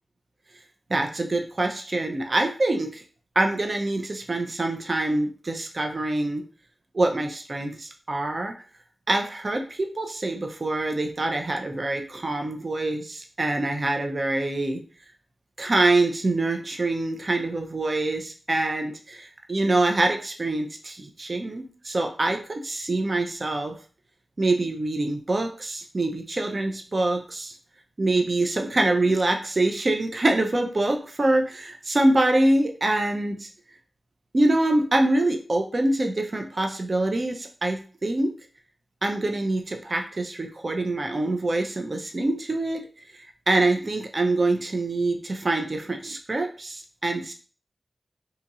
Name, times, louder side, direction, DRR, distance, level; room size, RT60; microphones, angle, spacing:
voice 1, 0.9-3.0 3.4-6.4 6.9-8.5 9.1-14.8 15.6-23.8 24.4-27.5 28.0-33.5 34.3-38.3 39.0-42.9 43.1-47.3, right 2 dB, 45° right, 3 dB, 0.5 m, -25 dB
2.8 x 2.4 x 4.1 m, 0.39 s
wide cardioid pair, 85°, 0 cm